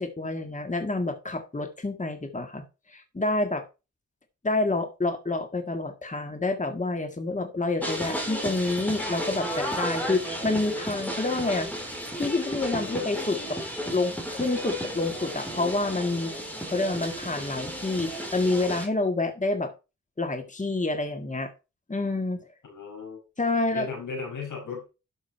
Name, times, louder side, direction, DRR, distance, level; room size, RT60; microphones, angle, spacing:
voice 1, 0.0-2.6 2.9-3.6 4.4-11.7 12.1-13.6 13.9-16.3 16.7-19.7 20.2-21.5 21.9-22.4 23.4-23.9, left 2 dB, 25° left, 6 dB, 1.7 m, -28 dB
sound 1, 7.8-18.9, equal, 5° left, 4.1 m, -33 dB
voice 2, 22.6-23.2 23.7-24.9, left 4 dB, 85° left, 1 dB, 6.1 m, -36 dB
12.0 x 6.4 x 4.4 m, 0.29 s
wide cardioid pair, 80°, 30 cm